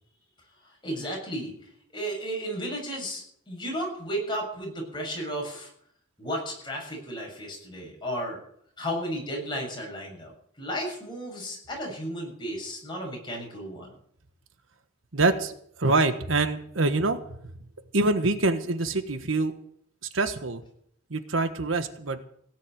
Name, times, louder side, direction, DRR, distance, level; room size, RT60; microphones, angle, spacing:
voice 1, 0.6-1.5 1.9-5.7 6.2-8.4 8.8-10.3 10.6-13.9, equal, 25° left, -1 dB, 7.0 m, -33 dB
voice 2, 15.1-17.2 17.9-19.5 20.1-20.6 21.1-22.2, right 3 dB, 85° right, 9 dB, 1.4 m, -25 dB
17.0 x 7.7 x 9.1 m, 0.67 s
head